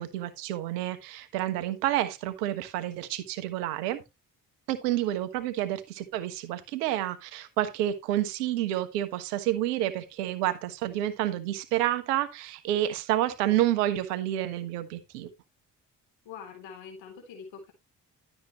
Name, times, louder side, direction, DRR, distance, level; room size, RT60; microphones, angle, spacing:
voice 1, 0.0-4.0 4.7-15.3, right 13 dB, 75° right, 1.3 m, -29 dB
voice 2, 16.2-17.7, left 6 dB, 65° left, 3.8 m, -44 dB
12.0 x 7.7 x 3.1 m
figure-of-eight pair, 40°, 48 cm